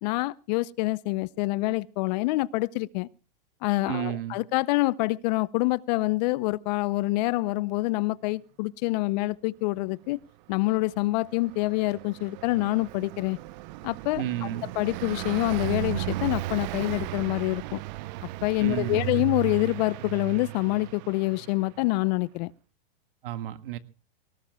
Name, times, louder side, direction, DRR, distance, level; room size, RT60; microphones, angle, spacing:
voice 1, 0.0-3.1 3.6-10.2 10.5-13.4 13.8-14.5 14.8-17.8 18.4-22.5, left 21 dB, 45° left, 0.7 m, -26 dB
voice 2, 3.9-4.4 14.2-14.7 18.6-19.3 23.2-23.8, right 12 dB, 65° right, 1.8 m, -32 dB
Car passing by, 10.8-21.8, right 17 dB, 50° right, 0.8 m, -35 dB
23.0 x 18.5 x 2.3 m
supercardioid pair, 145°, 29 cm